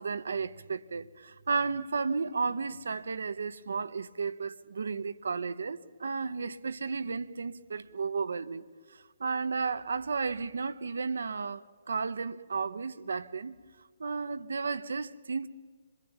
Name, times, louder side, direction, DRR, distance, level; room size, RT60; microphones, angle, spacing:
voice 1, 0.0-8.6 9.2-11.6 11.9-13.5 14.0-15.5, right 4 dB, 65° right, 1.0 m, -33 dB
26.5 x 21.5 x 9.1 m
figure-of-eight pair, 130°, 0 cm